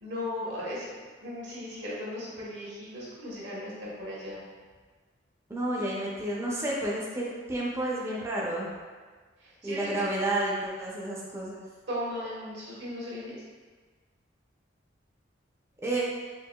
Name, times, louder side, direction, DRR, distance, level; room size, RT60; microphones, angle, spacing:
voice 1, 0.0-4.4 9.4-10.0 11.9-13.4, left 1 dB, 70° right, -7 dB, 1.2 m, -37 dB
voice 2, 5.5-8.7 9.6-11.6 15.8-16.0, right 1 dB, 15° right, -5 dB, 0.5 m, -30 dB
4.5 x 2.6 x 2.2 m, 1.5 s
head